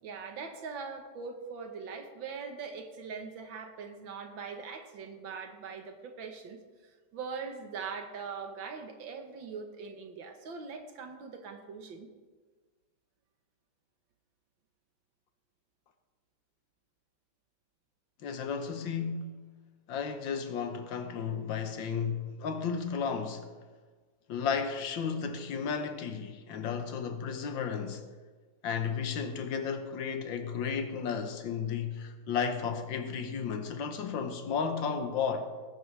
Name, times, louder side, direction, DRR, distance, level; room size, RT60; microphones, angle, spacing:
voice 1, 0.0-6.6 7.1-12.1, right 5 dB, 85° right, 2.0 m, -41 dB
voice 2, 18.2-19.3 19.9-23.5 24.3-28.1 28.6-35.5, left 6 dB, 80° left, 1.8 m, -33 dB
18.5 x 10.0 x 3.4 m
omnidirectional pair, 2.0 m